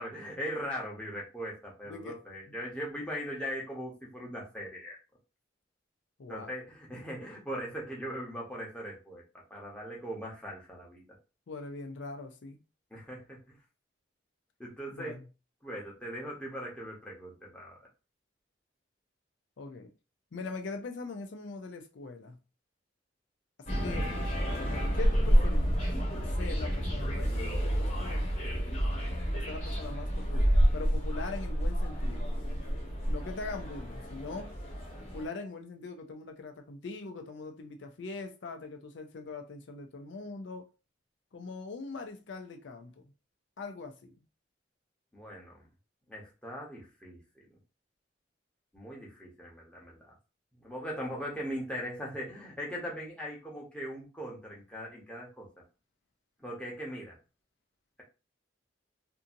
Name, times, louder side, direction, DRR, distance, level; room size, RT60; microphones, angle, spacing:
voice 1, 0.0-5.0 6.3-9.2 9.5-11.0 12.9-13.5 14.6-15.2 15.6-17.8 45.1-45.7 46.1-47.5 48.7-50.1 50.6-55.5 56.4-57.2, equal, 5° left, 0.8 m, -40 dB
voice 2, 1.8-2.2 2.5-2.6 6.2-6.5 11.5-12.6 15.0-15.2 19.6-19.9 20.3-22.4 23.6-24.1 24.9-25.8 26.2-28.3 29.3-32.3 33.1-34.6 35.1-40.7 41.3-43.0 43.6-44.1, left 3 dB, 75° left, 0.5 m, -42 dB
sound 1, 23.7-35.2, equal, 35° left, 1.0 m, -29 dB
2.7 x 2.6 x 2.5 m
head